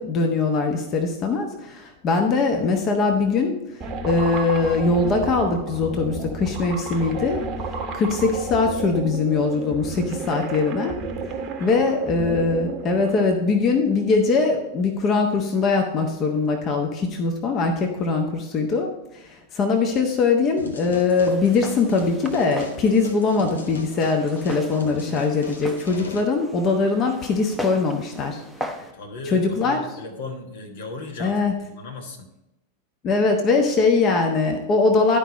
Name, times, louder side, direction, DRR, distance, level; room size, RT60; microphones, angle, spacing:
voice 1, 0.0-3.5 4.0-7.4 7.9-11.0 11.6-28.4 28.7-28.8 29.3-29.8 31.2-31.5 33.0-35.2, left 4 dB, 30° left, 3 dB, 1.1 m, -21 dB
sound 1, 3.8-13.3, right 3 dB, 35° right, 0.9 m, -32 dB
voice 2, 11.6-11.9 28.9-32.3, left 3 dB, 55° left, 4 dB, 1.3 m, -37 dB
sound 2, 20.6-26.2, left 2 dB, 75° left, 0.9 m, -39 dB
Walk footsteps, 21.1-28.9, equal, ahead, 0.9 m, -38 dB
11.5 x 5.1 x 4.2 m, 0.94 s
figure-of-eight pair, 90°, 0 cm